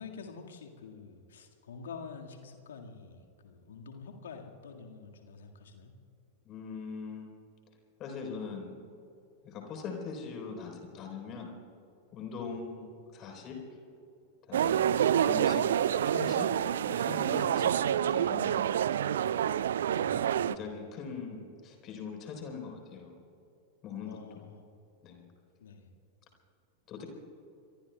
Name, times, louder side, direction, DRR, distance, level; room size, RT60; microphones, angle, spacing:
voice 1, 0.0-5.9 12.4-12.6 19.9-20.6 24.0-24.6 25.6-25.9, left 5 dB, 65° left, 2 dB, 1.8 m, -47 dB
voice 2, 6.4-7.3 8.0-8.8 9.4-11.5 12.1-13.6 14.5-14.9 15.2-16.5 16.8-17.7 18.1-19.0 20.4-23.1 23.8-24.4 25.0-25.2 26.9-27.1, left 5 dB, 35° left, 2 dB, 4.0 m, -41 dB
sound 1, 14.5-20.6, right 9 dB, 60° right, 0.4 m, -27 dB
27.0 x 23.0 x 2.3 m, 2.8 s
figure-of-eight pair, 90°, 0 cm